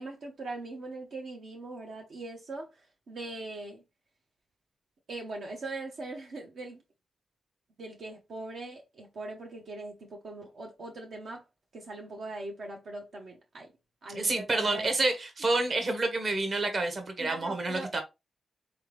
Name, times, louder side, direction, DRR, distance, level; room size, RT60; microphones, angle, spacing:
voice 1, 0.0-3.8 5.1-6.8 7.8-11.4 11.7-13.7 14.0-14.9 17.2-17.9, right 2 dB, 70° right, 1.0 m, -41 dB
voice 2, 14.1-18.0, right 2 dB, 45° right, 1.3 m, -29 dB
4.0 x 3.6 x 3.1 m
cardioid pair, 100°, 0 cm